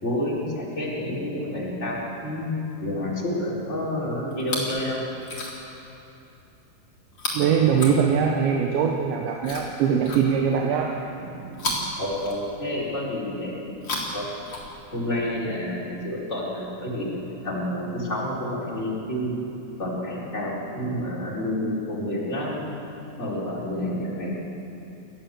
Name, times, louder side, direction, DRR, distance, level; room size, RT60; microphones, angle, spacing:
voice 1, 0.0-5.0 7.5-8.0 12.0-13.5 14.1-14.3 14.9-17.2 17.4-19.3 19.8-22.7 23.2-24.3, left 1 dB, 15° left, -5 dB, 4.4 m, -29 dB
Chewing mastication, 4.3-4.8 5.2-5.8 7.1-8.5 9.4-10.7 11.5-12.8 13.7-15.1 16.0-16.1, left 2 dB, 30° left, 4.2 m, -34 dB
voice 2, 7.3-11.9, right 7 dB, 90° right, 2 dB, 3.5 m, -23 dB
29.5 x 14.0 x 7.7 m, 2.9 s
omnidirectional pair, 5.0 m